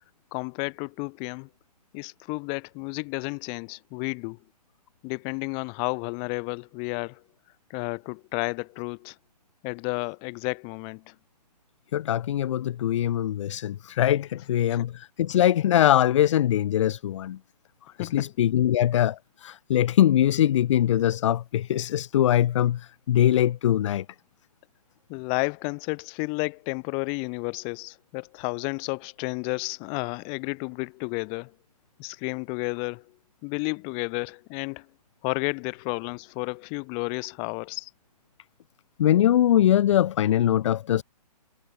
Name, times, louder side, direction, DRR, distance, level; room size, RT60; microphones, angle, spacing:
voice 1, 0.3-1.5 1.9-4.4 5.0-7.2 7.7-9.1 9.6-11.1 14.7-14.8 18.0-18.3 25.1-31.5 32.0-33.0 33.4-34.9 35.2-37.9, left 39 dB, 25° left, 3.3 m, -32 dB
voice 2, 11.9-17.4 18.0-24.0 39.0-41.0, left 11 dB, 45° left, 0.8 m, -22 dB
hypercardioid pair, 150°, 21 cm